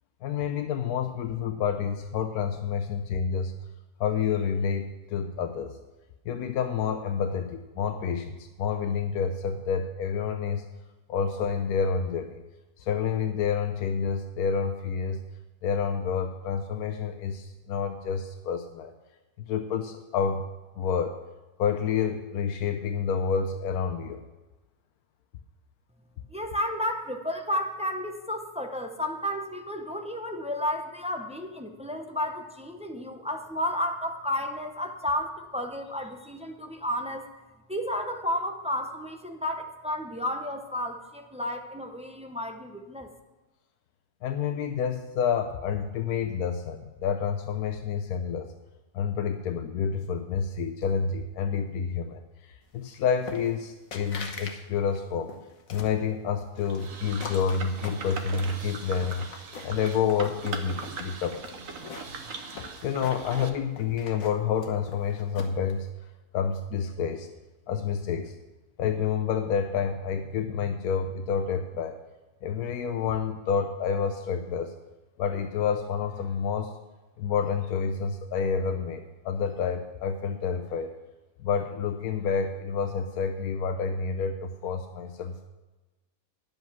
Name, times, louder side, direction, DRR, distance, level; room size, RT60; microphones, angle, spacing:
voice 1, 0.2-3.6 4.0-5.8 6.3-10.6 11.1-12.4 12.8-15.2 15.6-18.9 19.4-20.5 20.8-21.2 21.6-24.2 44.2-48.5 48.9-55.3 55.7-59.3 59.6-61.5 62.8-65.9 66.3-67.3 67.7-68.3 68.8-72.0 72.4-74.7 75.2-76.7 77.2-80.9 81.4-85.4, left 6 dB, 90° left, 6 dB, 1.2 m, -29 dB
voice 2, 26.3-37.3 37.7-43.1, left 1 dB, 10° right, 4 dB, 0.4 m, -32 dB
sound 1, 53.3-53.6 53.9-54.6 54.9-56.0 56.6-58.4 58.8-59.9 60.2-61.0 61.4-63.5 63.8-65.7, left 5 dB, 70° left, 1.5 m, -42 dB
sound 2, 56.7-63.5, right 5 dB, 65° right, 1.3 m, -40 dB
10.5 x 8.0 x 6.0 m, 1.2 s
omnidirectional pair, 1.5 m